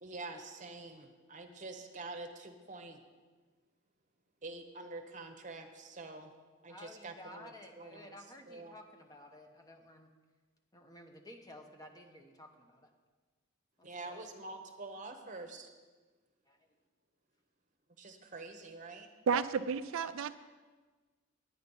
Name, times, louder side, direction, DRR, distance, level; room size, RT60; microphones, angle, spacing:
voice 1, 0.0-3.0 4.4-6.3 6.6-8.1 8.5-8.8 13.8-15.7 18.0-19.1, right 3 dB, 35° right, 5 dB, 0.9 m, -46 dB
voice 2, 6.7-10.1 10.7-12.9 13.8-14.2 16.5-16.7, left 1 dB, 15° left, 4 dB, 0.8 m, -53 dB
voice 3, 19.3-20.3, right 6 dB, 70° right, 12 dB, 0.4 m, -32 dB
9.4 x 9.3 x 5.4 m, 1.4 s
head